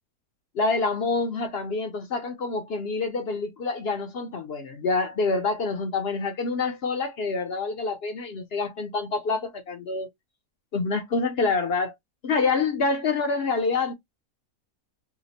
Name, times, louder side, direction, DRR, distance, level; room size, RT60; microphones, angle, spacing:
voice 1, 0.5-10.1 10.7-11.9 12.2-13.9, left 4 dB, 60° left, 0.7 m, -27 dB
2.8 x 2.0 x 3.9 m
omnidirectional pair, 1.6 m